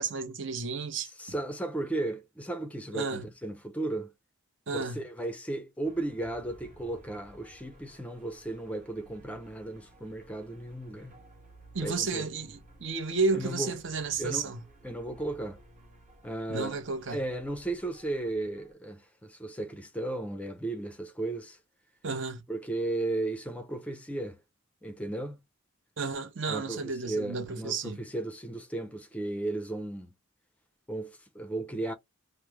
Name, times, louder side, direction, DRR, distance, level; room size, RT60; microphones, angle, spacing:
voice 1, 0.0-1.1 2.9-3.2 4.7-5.0 11.7-14.6 16.5-17.2 22.0-22.4 26.0-28.0, right 4 dB, 60° right, 0.7 m, -32 dB
voice 2, 1.0-4.1 4.7-11.2 11.8-12.3 13.3-13.7 14.2-14.5 14.8-15.6 16.2-16.8 17.1-21.6 22.5-24.4 24.8-25.4 26.5-30.1 30.9-31.9, right 2 dB, 5° left, 0.5 m, -35 dB
sound 1, 5.8-18.7, right 1 dB, 35° right, 1.0 m, -56 dB
3.0 x 2.1 x 3.3 m
head